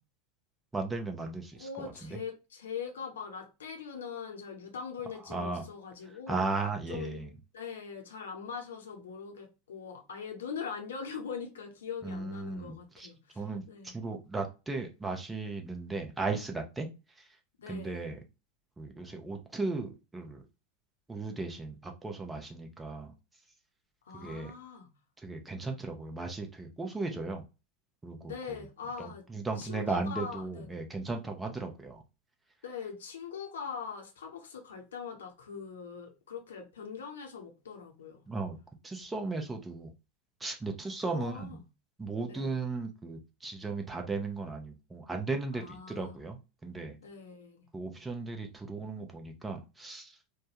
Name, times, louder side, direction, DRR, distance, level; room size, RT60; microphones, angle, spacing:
voice 1, 0.7-2.2 5.3-5.6 6.3-7.3 12.0-13.1 13.4-16.9 17.2-17.3 17.7-18.2 18.8-20.4 21.1-23.1 24.1-24.5 25.2-27.4 28.0-28.7 29.0-32.0 38.3-38.6 38.8-39.9 40.4-41.6 42.0-47.0 47.7-50.2, right 3 dB, 10° right, 0.6 m, -36 dB
voice 2, 1.6-6.4 6.9-7.3 7.5-13.9 17.6-18.1 24.1-24.9 28.2-29.2 29.6-30.8 32.6-38.2 41.1-41.6 42.3-42.6 45.5-46.2 47.0-47.7, left 6 dB, 65° left, 0.8 m, -42 dB
3.3 x 2.1 x 2.7 m
figure-of-eight pair, 85°, 0 cm